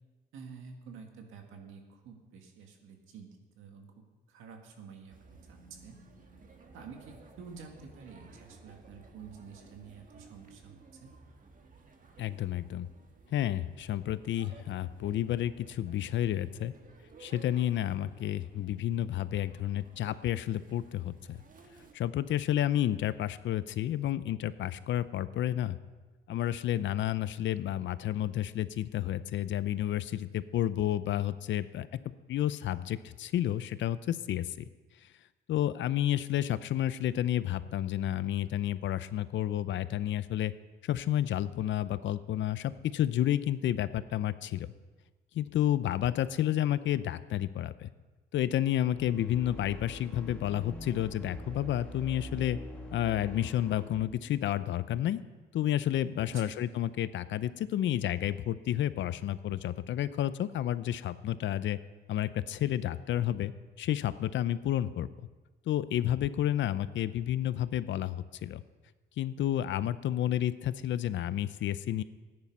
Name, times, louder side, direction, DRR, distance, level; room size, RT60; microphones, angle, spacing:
voice 1, 0.3-6.0 6.7-11.1 36.4-36.5 56.3-56.5, right 5 dB, 90° right, 3 dB, 2.0 m, -49 dB
sound 1, 5.1-21.9, right 3 dB, 45° right, 1.6 m, -56 dB
voice 2, 12.2-12.9 13.3-16.7 17.2-21.4 21.9-25.8 26.3-31.9 32.3-34.6 35.5-40.5 40.8-44.7 45.3-47.9 48.3-52.6 52.9-55.2 55.5-61.8 62.1-63.5 63.8-65.1 65.7-68.6 69.2-72.0, left 12 dB, 70° left, 15 dB, 0.6 m, -30 dB
sound 2, 48.8-54.0, equal, 5° left, 2.5 m, -44 dB
14.5 x 9.8 x 5.4 m, 1.3 s
cardioid pair, 90°, 20 cm